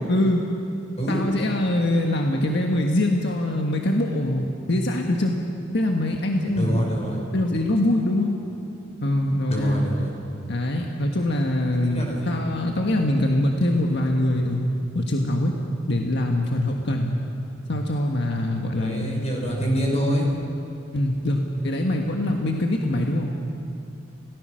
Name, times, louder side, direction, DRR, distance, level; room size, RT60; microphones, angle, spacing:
voice 1, 0.1-0.5 1.1-5.4 5.7-6.9 7.3-8.3 9.0-9.8 10.5-14.6 14.9-15.5 15.9-17.2 17.7-19.2 20.9-23.3, left 1 dB, 60° left, 2 dB, 1.6 m, -23 dB
voice 2, 6.5-7.2 9.5-10.1 11.8-12.3 18.8-20.3, equal, 35° left, -1 dB, 5.3 m, -26 dB
29.0 x 18.5 x 6.4 m, 2.6 s
head